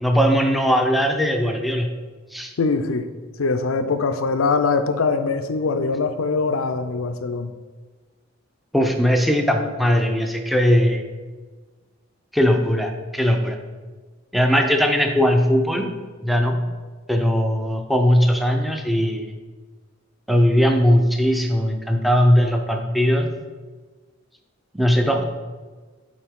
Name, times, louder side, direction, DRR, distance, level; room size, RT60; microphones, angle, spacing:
voice 1, 0.0-1.9 2.3-2.5 8.7-11.0 12.3-13.6 14.3-15.9 16.2-16.6 17.1-19.3 20.3-23.3 24.7-25.2, equal, ahead, 3 dB, 0.5 m, -19 dB
voice 2, 2.6-3.1 3.4-7.5, left 4 dB, 90° left, 9 dB, 0.5 m, -22 dB
8.6 x 4.5 x 3.6 m, 1.4 s
head